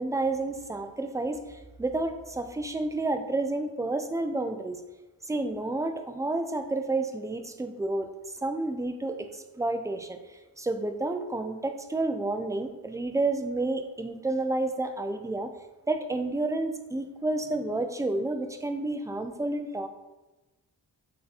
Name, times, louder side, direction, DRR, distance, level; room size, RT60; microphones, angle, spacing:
voice 1, 0.0-4.8 5.2-8.1 8.4-10.2 10.6-15.5 15.9-19.9, right 2 dB, 10° right, 7 dB, 0.3 m, -30 dB
3.3 x 2.8 x 4.0 m, 1.1 s
cardioid pair, 45°, 44 cm